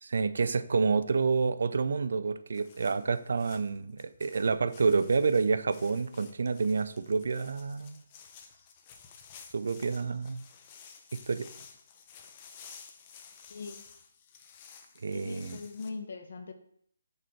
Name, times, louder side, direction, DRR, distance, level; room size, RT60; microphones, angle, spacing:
voice 1, 0.0-8.0 9.5-10.4 11.1-11.5 15.0-15.6, right 4 dB, 65° right, 13 dB, 0.4 m, -28 dB
sound 1, 2.5-15.9, left 6 dB, 25° left, 0.6 m, -53 dB
voice 2, 13.5-13.8 15.1-16.5, left 4 dB, 55° left, 6 dB, 0.8 m, -41 dB
6.6 x 4.6 x 4.5 m, 0.66 s
hypercardioid pair, 165°, 0 cm